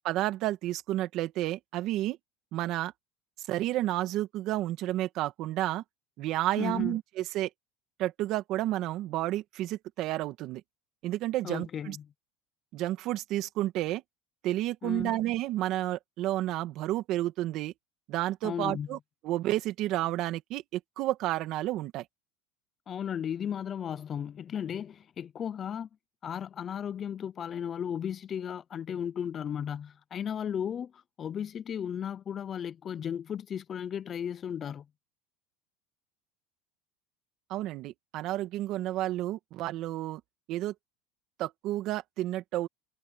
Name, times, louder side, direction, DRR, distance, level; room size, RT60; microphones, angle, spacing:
voice 1, 0.0-2.2 2.5-2.9 3.5-5.8 6.2-7.5 8.0-10.6 11.0-12.0 12.7-14.0 14.4-17.7 18.1-19.0 19.2-22.0 37.5-40.2 40.5-40.7 41.4-42.7, right 15 dB, 50° right, 1.9 m, -31 dB
voice 2, 6.6-7.0 11.4-12.1 14.8-15.2 18.4-18.9 22.9-25.9 26.2-34.9, left 8 dB, 30° left, 0.6 m, -35 dB
supercardioid pair, 135°, 0 cm